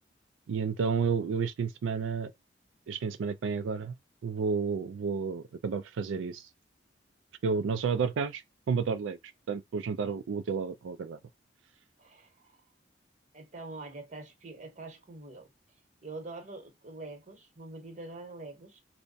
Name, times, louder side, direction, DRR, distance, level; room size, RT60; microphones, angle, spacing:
voice 1, 0.5-2.3 2.9-3.9 4.2-6.5 7.4-9.2 9.5-11.2, right 5 dB, 90° right, 0.4 m, -31 dB
voice 2, 12.0-12.6 13.3-15.5 16.0-18.8, right 2 dB, 40° right, 1.0 m, -45 dB
3.4 x 2.0 x 3.9 m
head